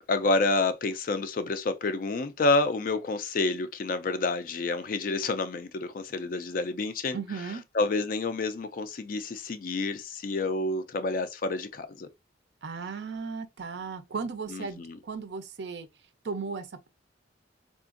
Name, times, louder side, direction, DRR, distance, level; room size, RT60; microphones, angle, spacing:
voice 1, 0.0-7.2 7.7-12.1 14.5-15.0, left 3 dB, 45° left, 0.4 m, -29 dB
voice 2, 7.1-7.6 12.6-15.9 16.2-16.9, right 5 dB, 60° right, 0.5 m, -36 dB
3.7 x 2.5 x 2.4 m
head